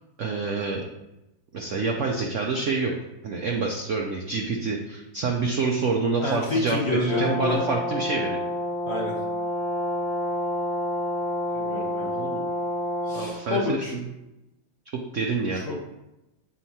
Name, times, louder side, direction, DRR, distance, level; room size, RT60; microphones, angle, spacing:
voice 1, 0.2-0.8 1.5-2.9 3.2-8.4 12.0-12.4 13.1-14.0 15.1-15.6, right 4 dB, 90° right, 1 dB, 0.6 m, -27 dB
voice 2, 6.2-7.6 8.8-9.2 11.5-12.1 13.1-14.0 15.5-15.9, left 3 dB, 45° left, -3 dB, 1.0 m, -28 dB
Brass instrument, 7.0-13.3, left 1 dB, 80° left, 3.2 m, -29 dB
7.4 x 5.4 x 2.8 m, 0.97 s
omnidirectional pair, 2.1 m